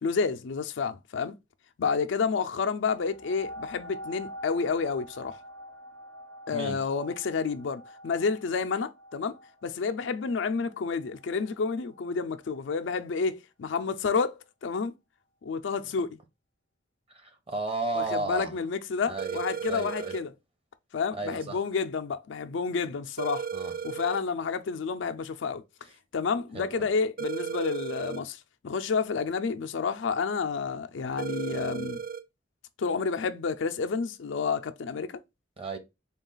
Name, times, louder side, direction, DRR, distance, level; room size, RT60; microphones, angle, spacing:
voice 1, 0.0-1.3 1.8-5.4 6.5-9.4 9.6-15.0 15.4-16.2 17.9-20.3 20.9-23.5 23.8-25.6 26.1-28.4 28.6-32.0 32.8-35.2, left 5 dB, 70° left, 0.4 m, -30 dB
sound 1, 3.0-12.2 12.8-12.9, equal, 70° right, 0.8 m, -46 dB
voice 2, 6.5-6.8 17.1-18.5 19.1-20.1 21.1-21.6 23.5-23.7 26.5-26.9 35.6-35.8, right 3 dB, 30° right, 0.8 m, -34 dB
sound 2, 19.2-20.2 23.2-24.2 27.2-28.2 31.2-32.2, right 7 dB, 45° right, 0.4 m, -34 dB
3.9 x 2.3 x 3.8 m
head